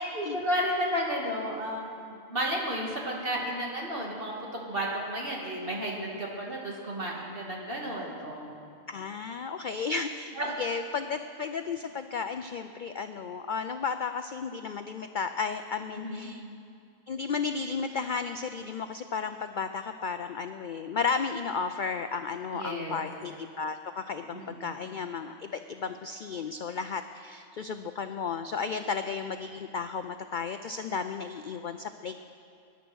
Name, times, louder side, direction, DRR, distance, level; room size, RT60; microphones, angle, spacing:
voice 1, 0.1-4.3 4.7-8.5 10.4-10.5 15.9-16.3 22.5-23.1 24.3-24.8, equal, 40° right, -2 dB, 2.7 m, -32 dB
voice 2, 8.9-16.4 17.1-32.3, left 5 dB, 70° left, 8 dB, 0.4 m, -33 dB
22.0 x 10.5 x 6.3 m, 2.4 s
omnidirectional pair, 1.5 m